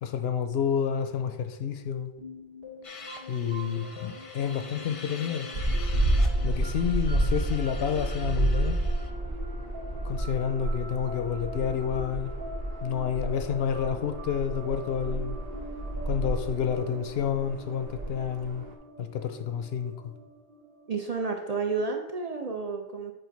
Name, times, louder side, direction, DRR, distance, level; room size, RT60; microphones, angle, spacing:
voice 1, 0.0-2.1 3.3-5.5 6.4-8.8 10.0-12.3 12.8-15.4 16.1-18.6 19.0-20.1, left 8 dB, 70° left, 8 dB, 0.8 m, -29 dB
sound 1, 2.2-21.7, left 1 dB, 80° right, 2.2 m, -44 dB
sound 2, 2.8-9.1, left 4 dB, 40° left, 0.6 m, -45 dB
sound 3, 5.5-18.7, right 1 dB, 65° right, 1.0 m, -30 dB
voice 2, 20.9-23.1, right 4 dB, 45° right, 2 dB, 0.5 m, -31 dB
7.6 x 2.5 x 5.1 m, 0.92 s
omnidirectional pair, 1.1 m